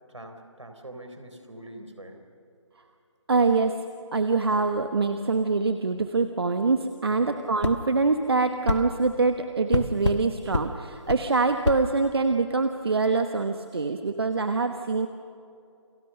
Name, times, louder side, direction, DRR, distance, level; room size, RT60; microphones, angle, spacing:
voice 1, 0.1-2.2 7.1-7.3, right 1 dB, 75° right, 6 dB, 3.9 m, -43 dB
voice 2, 3.3-3.8 4.1-15.1, right 4 dB, 55° right, 7 dB, 1.2 m, -24 dB
sound 1, 7.6-7.8 8.7-8.8 9.7-10.2 10.5-10.7 11.1-11.2 11.6-11.8, left 3 dB, 65° left, 1.3 m, -26 dB
29.5 x 22.0 x 6.6 m, 2.6 s
figure-of-eight pair, 150°, 16 cm